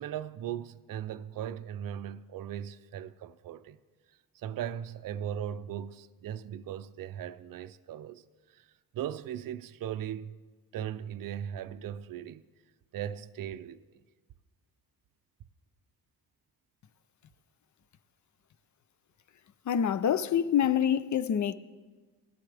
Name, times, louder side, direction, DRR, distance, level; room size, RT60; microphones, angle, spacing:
voice 1, 0.0-3.8 4.3-8.7 8.9-10.4 10.7-12.4 12.9-14.0, right 10 dB, 55° right, 0.5 m, -38 dB
voice 2, 19.7-21.5, left 9 dB, 45° left, 0.6 m, -26 dB
17.5 x 12.0 x 3.4 m
cardioid pair, 85°, 40 cm